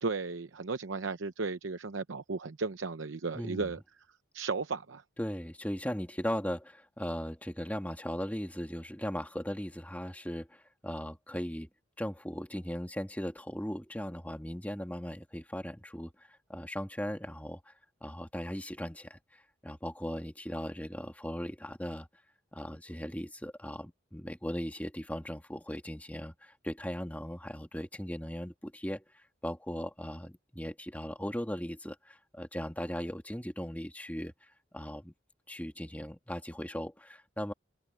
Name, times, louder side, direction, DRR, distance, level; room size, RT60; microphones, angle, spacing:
voice 1, 0.0-3.8 4.3-5.0, right 4 dB, 90° right, 0.8 m, -35 dB
voice 2, 3.3-3.7 5.2-11.7 12.0-17.7 18.0-22.1 22.5-34.3 34.7-35.1 35.5-37.5, equal, 10° left, 2.3 m, -38 dB
head